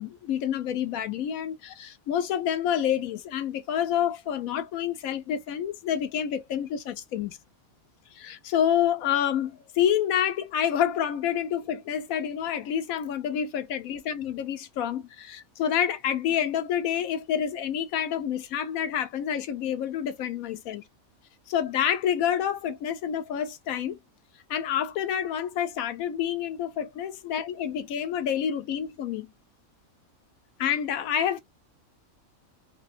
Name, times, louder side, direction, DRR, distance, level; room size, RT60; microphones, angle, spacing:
voice 1, 0.0-7.4 8.1-20.8 21.5-24.0 24.5-29.3 30.6-31.4, left 9 dB, 75° left, 1.1 m, -28 dB
3.4 x 2.8 x 2.6 m
omnidirectional pair, 1.5 m